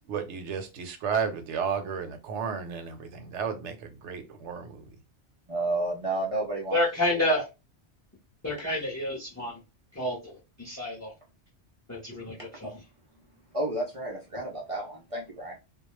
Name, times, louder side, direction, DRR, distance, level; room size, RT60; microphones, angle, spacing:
voice 1, 0.1-5.0, right 6 dB, 80° right, 0.9 m, -33 dB
voice 2, 5.5-6.8 7.1-7.4 12.6-12.7 13.5-15.6, right 2 dB, 55° right, 0.4 m, -31 dB
voice 3, 6.7-7.4 8.4-9.5 10.0-10.2 10.6-11.1 11.9-12.4, left 1 dB, 20° left, 0.5 m, -28 dB
2.2 x 2.0 x 2.9 m
omnidirectional pair, 1.2 m